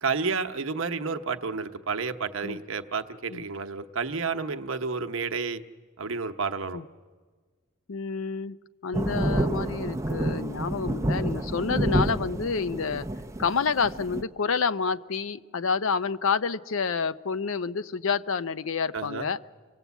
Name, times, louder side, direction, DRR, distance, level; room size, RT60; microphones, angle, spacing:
voice 1, 0.0-5.6 6.0-6.8 18.9-19.3, right 4 dB, 80° right, 7 dB, 0.9 m, -30 dB
voice 2, 7.9-8.6 8.8-13.1 13.4-19.4, left 5 dB, 75° left, 14 dB, 0.6 m, -28 dB
sound 1, 8.9-14.2, right 1 dB, 15° right, 0.6 m, -29 dB
25.5 x 18.5 x 8.2 m, 1.5 s
head